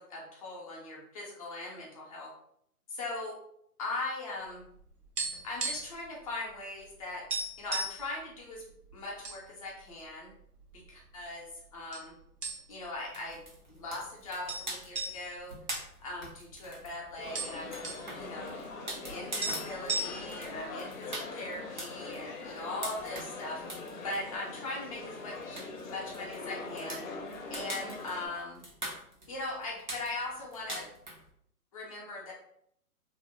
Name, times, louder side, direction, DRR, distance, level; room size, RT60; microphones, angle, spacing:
voice 1, 0.0-2.3 2.9-3.4 3.8-4.7 5.4-7.2 7.6-8.6 8.9-10.3 10.7-11.4 11.7-12.2 12.7-13.4 13.7-15.5 16.0-17.7 18.1-18.6 19.1-23.6 24.0-27.1 27.5-28.6 29.3-30.9 31.7-32.3, left 2 dB, 25° left, -3 dB, 0.6 m, -40 dB
sound 1, 4.6-6.1 6.3-6.5 6.9-7.0 7.3-8.0 8.7-9.4 9.8-9.9 10.6-11.2 11.9-12.1 12.4-12.9 13.3-13.4 14.5-16.5 16.8-16.9 17.1-18.1 19.1-19.2 19.4-20.5, right 3 dB, 80° right, 1.0 m, -36 dB
sound 2, 13.1-31.3, right 1 dB, 35° right, 0.4 m, -44 dB
sound 3, 17.2-28.3, left 3 dB, 60° left, 0.7 m, -42 dB
2.7 x 2.7 x 2.6 m, 0.70 s
hypercardioid pair, 140°, 47 cm